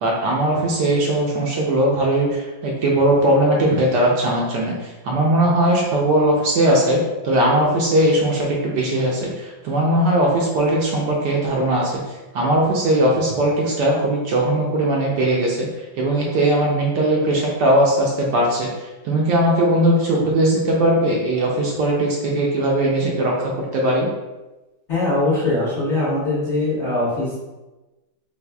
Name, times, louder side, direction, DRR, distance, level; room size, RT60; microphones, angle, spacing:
voice 1, 0.0-24.1, right 1 dB, 75° right, -2 dB, 1.1 m, -19 dB
voice 2, 24.9-27.4, left 2 dB, 45° left, -9 dB, 1.0 m, -21 dB
4.1 x 2.4 x 2.2 m, 1.1 s
omnidirectional pair, 2.1 m